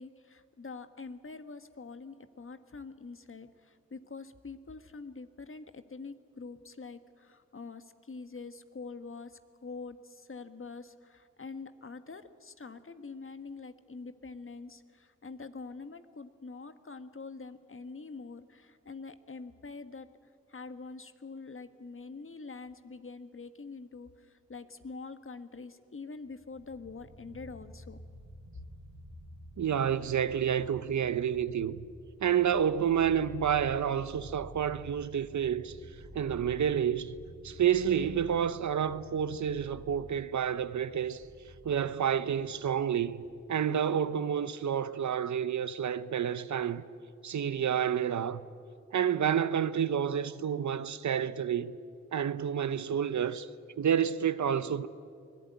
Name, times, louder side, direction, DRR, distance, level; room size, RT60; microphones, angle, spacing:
voice 1, 0.0-20.1 20.5-28.0, left 4 dB, 45° left, 1.5 m, -45 dB
sound 1, 26.3-43.7, right 1 dB, 85° right, 5.1 m, -51 dB
voice 2, 29.6-31.8 32.2-35.8 36.1-37.1 37.4-41.2 41.6-46.8 47.2-48.4 48.9-51.8 52.1-53.5 53.8-54.9, right 8 dB, 70° right, 0.9 m, -29 dB
24.0 x 17.0 x 9.3 m
cardioid pair, 40°, 30 cm